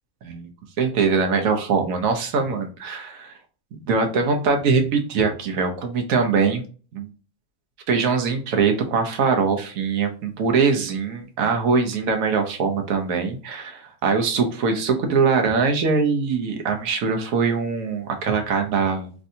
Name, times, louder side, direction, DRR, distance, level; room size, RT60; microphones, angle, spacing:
voice 1, 0.8-3.3 3.7-6.6 6.9-7.1 7.9-19.1, right 5 dB, 70° right, 4 dB, 1.1 m, -22 dB
3.3 x 2.6 x 2.6 m, 0.39 s
omnidirectional pair, 1.5 m